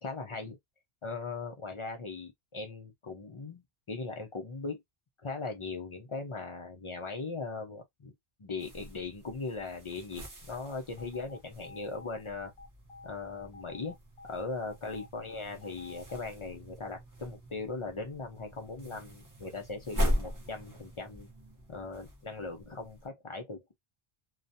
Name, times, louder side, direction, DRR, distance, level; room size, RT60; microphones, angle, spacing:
voice 1, 0.0-0.6 1.0-4.8 5.2-8.1 8.4-12.5 13.0-14.0 14.2-21.3 21.7-23.7, left 3 dB, 45° left, 0.4 m, -39 dB
sound 1, 8.6-23.1, equal, 20° right, 0.6 m, -40 dB
sound 2, 11.0-16.2, left 3 dB, 70° left, 1.0 m, -50 dB
2.3 x 2.1 x 2.6 m
omnidirectional pair, 1.0 m